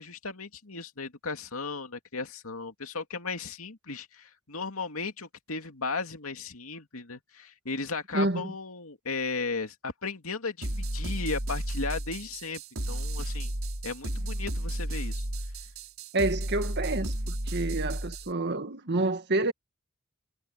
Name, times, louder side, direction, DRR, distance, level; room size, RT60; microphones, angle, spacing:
voice 1, 0.0-12.6 12.9-13.5 13.8-15.2, left 4 dB, 85° left, 2.5 m, -36 dB
voice 2, 8.1-8.5 16.1-19.5, right 2 dB, 55° right, 1.7 m, -28 dB
sound 1, 10.6-18.3, right 1 dB, 75° right, 4.5 m, -33 dB
head